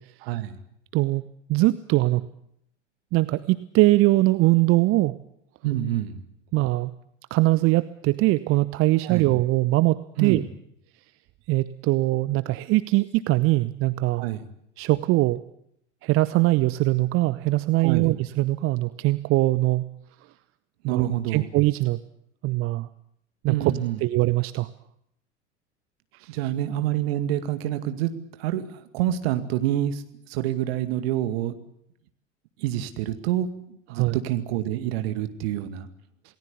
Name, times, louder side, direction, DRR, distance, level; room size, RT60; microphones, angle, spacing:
voice 1, 0.2-0.6 5.6-6.2 9.0-9.3 10.2-10.5 14.1-14.5 17.8-18.1 20.9-21.5 23.5-24.0 26.3-28.1 28.4-31.6 32.6-35.9, right 12 dB, 55° right, 9 dB, 2.3 m, -27 dB
voice 2, 1.5-2.3 3.1-5.2 6.5-6.9 7.3-10.4 11.5-14.2 14.8-15.4 16.0-19.8 20.8-22.0 22.4-22.9 23.4-23.5 24.0-24.7 26.1-26.3 33.9-34.2, right 19 dB, 40° right, 14 dB, 0.9 m, -22 dB
28.0 x 19.0 x 8.4 m, 0.74 s
figure-of-eight pair, 75°, 36 cm